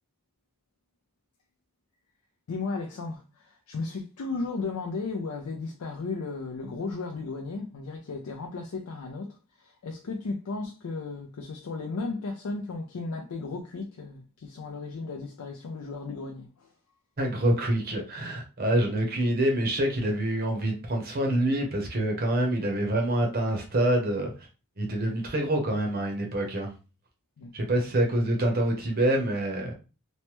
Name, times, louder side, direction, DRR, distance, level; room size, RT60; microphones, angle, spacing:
voice 1, 2.5-16.7 27.4-27.5, left 3 dB, 85° left, 0.4 m, -35 dB
voice 2, 17.2-24.3 24.8-26.7 27.5-29.7, right 1 dB, 45° right, 0.7 m, -26 dB
3.1 x 2.1 x 2.9 m
head